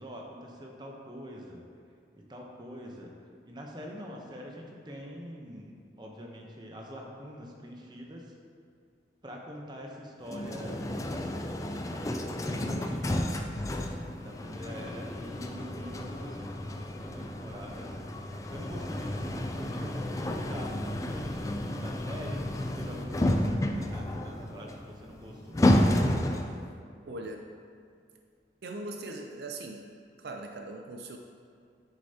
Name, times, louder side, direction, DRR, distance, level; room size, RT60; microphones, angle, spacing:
voice 1, 0.0-1.6 2.1-3.1 3.4-8.3 9.2-11.4 11.7-13.3 14.1-18.0 18.5-20.7 21.1-25.6, equal, 25° right, 0 dB, 0.8 m, -44 dB
sound 1, 10.3-26.7, left 1 dB, 20° left, 0.3 m, -31 dB
voice 2, 27.0-27.5 28.6-29.9 30.2-31.2, right 2 dB, 65° right, 3 dB, 0.5 m, -40 dB
8.9 x 6.5 x 2.8 m, 2.3 s
head